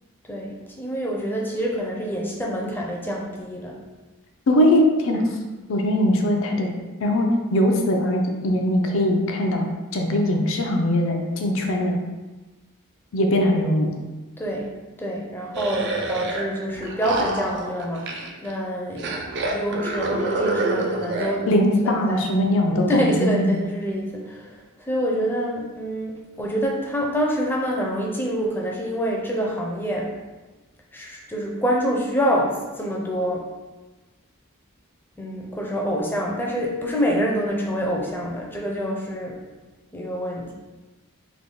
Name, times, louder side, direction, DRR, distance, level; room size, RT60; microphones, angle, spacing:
voice 1, 0.3-3.8 14.4-14.7 15.0-19.2 19.5-21.5 22.1-22.3 22.9-24.5 24.9-30.1 30.9-33.5 35.2-39.4 39.9-40.5, equal, 10° left, -2 dB, 0.5 m, -26 dB
voice 2, 4.5-5.3 5.7-6.7 7.0-12.0 13.1-13.9 21.5-23.6, left 1 dB, 60° left, 2 dB, 0.5 m, -21 dB
sound 1, 15.5-16.4 16.7-18.5 19.0-21.3, right 3 dB, 50° right, 0.4 m, -27 dB
3.4 x 2.3 x 3.7 m, 1.2 s
head